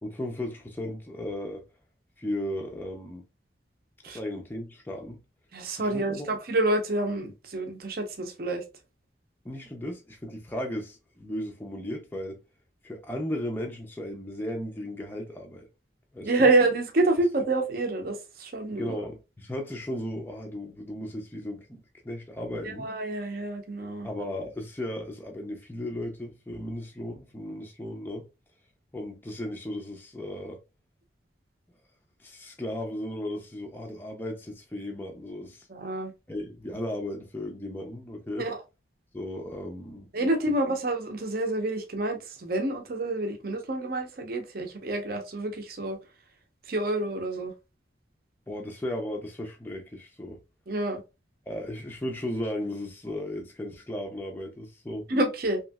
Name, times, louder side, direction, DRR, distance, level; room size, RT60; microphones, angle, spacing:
voice 1, 0.0-1.6 2.2-3.2 4.1-5.2 5.8-6.3 9.4-12.4 12.8-15.7 16.1-16.5 18.7-22.9 24.0-28.3 28.9-30.6 32.2-35.7 36.3-38.5 39.1-40.1 48.5-50.4 51.5-55.1, left 1 dB, 10° left, 0.4 m, -35 dB
voice 2, 5.5-8.6 16.2-19.0 22.6-24.1 35.7-36.1 38.4-38.6 40.1-46.0 46.7-47.5 50.7-51.0 55.1-55.6, right 2 dB, 50° right, 0.6 m, -28 dB
3.0 x 2.6 x 2.2 m
head